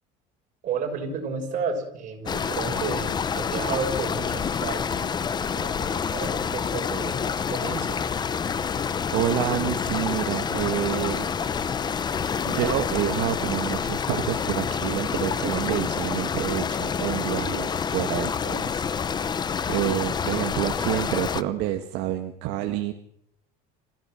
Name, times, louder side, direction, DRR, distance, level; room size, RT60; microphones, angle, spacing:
voice 1, 0.6-3.1 3.3-5.1 5.3-8.0, right 5 dB, 45° right, 2 dB, 6.6 m, -32 dB
sound 1, 2.3-21.4, left 6 dB, 20° left, 0.8 m, -28 dB
voice 2, 9.1-11.3 12.4-19.4 19.7-22.9, right 13 dB, 70° right, 5 dB, 2.0 m, -28 dB
26.5 x 16.0 x 7.8 m, 0.74 s
cardioid pair, 140°, 19 cm